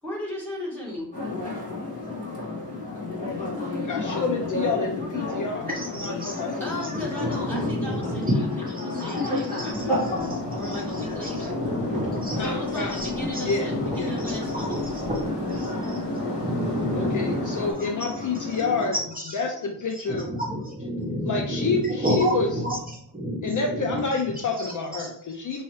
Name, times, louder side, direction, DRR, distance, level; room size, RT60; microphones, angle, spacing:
voice 1, 0.0-1.1 6.6-10.0 10.6-11.9 12.3-14.8, left 1 dB, 5° left, -6 dB, 1.8 m, -36 dB
sound 1, 1.1-18.9, left 3 dB, 20° left, 1.9 m, -32 dB
voice 2, 3.8-6.7 12.3-13.0 13.4-14.3 16.9-19.0 19.3-20.3 20.8-20.9 21.2-22.6 23.4-25.6, left 4 dB, 50° left, 2 dB, 0.5 m, -28 dB
voice 3, 5.7-6.4 6.9-8.4 8.9-9.0 9.6-10.1 10.5-10.8 11.2-12.4 13.0-13.1 13.3-13.4 14.2-14.7 15.5-16.0 16.4-17.5 20.1-21.7 22.0-22.8 23.1-24.0, equal, 20° right, -3 dB, 1.0 m, -30 dB
sound 2, 9.7-17.7, equal, 85° left, 1.0 m, -33 dB
5.5 x 3.1 x 3.1 m, 0.66 s
wide cardioid pair, 150°, 40 cm